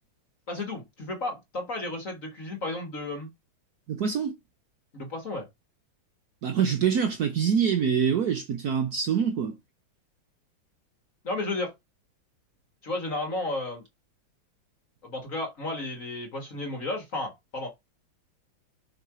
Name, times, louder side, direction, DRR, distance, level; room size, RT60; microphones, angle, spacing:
voice 1, 0.5-3.3 4.9-5.5 11.2-11.7 12.8-13.8 15.0-17.7, left 2 dB, 45° left, 1.8 m, -33 dB
voice 2, 3.9-4.3 6.4-9.6, right 7 dB, 60° right, 1.2 m, -25 dB
7.0 x 3.7 x 4.8 m
omnidirectional pair, 2.2 m